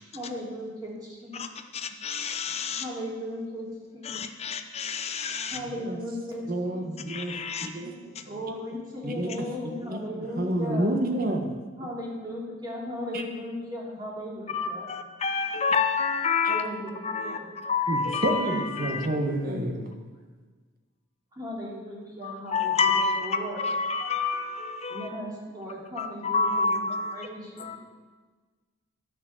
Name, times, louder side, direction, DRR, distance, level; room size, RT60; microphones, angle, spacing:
voice 1, 0.1-1.4 2.7-3.7 3.9-4.1 5.5-6.4 6.7-6.9 8.3-10.9 11.8-14.9 16.4-16.9 17.2-17.5 19.4-19.6 21.3-23.6 24.9-27.8, equal, 20° right, 2.9 m, -37 dB
voice 2, 1.7-2.8 4.0-5.6 7.1-7.7 14.5-16.6 17.0-19.1 22.2-23.3 23.6-25.1 26.0-27.3 27.6-27.8, left 5 dB, 30° left, 0.7 m, -28 dB
voice 3, 6.5-7.3 7.6-8.3 9.0-9.3 9.6-11.5 13.1-13.2 16.4-16.5 17.9-19.9, right 1 dB, 45° right, 1.4 m, -29 dB
11.5 x 6.2 x 7.9 m
head